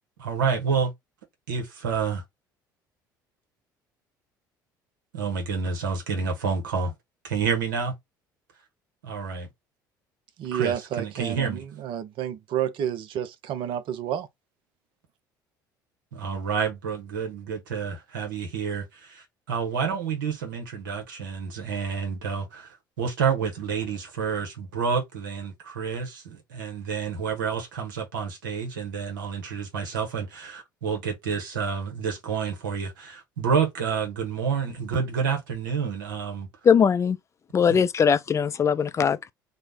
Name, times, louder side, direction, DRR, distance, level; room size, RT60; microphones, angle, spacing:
voice 1, 0.2-0.9 1.5-2.2 5.1-6.9 7.2-7.9 9.0-9.5 10.5-11.6 16.1-36.5, right 6 dB, 75° right, 0.8 m, -29 dB
voice 2, 10.4-14.3, right 9 dB, 55° right, 0.5 m, -30 dB
voice 3, 36.6-37.2 37.5-39.3, left 7 dB, 30° left, 0.4 m, -20 dB
3.2 x 2.1 x 3.7 m
figure-of-eight pair, 60°, 11 cm